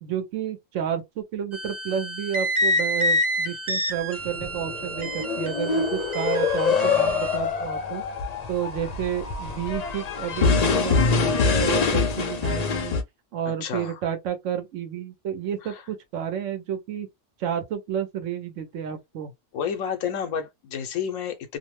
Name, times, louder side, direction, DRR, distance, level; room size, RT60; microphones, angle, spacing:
voice 1, 0.0-8.0 8.5-12.9 13.3-17.1 17.4-19.3, right 9 dB, 75° right, 1.1 m, -31 dB
sound 1, 1.5-7.4, left 1 dB, 50° right, 0.3 m, -28 dB
sound 2, 4.2-13.0, left 5 dB, 55° left, 0.4 m, -25 dB
voice 2, 6.7-7.6 13.5-14.0 15.7-15.8 19.5-21.6, left 7 dB, 85° left, 1.0 m, -31 dB
2.7 x 2.0 x 3.0 m
omnidirectional pair, 1.3 m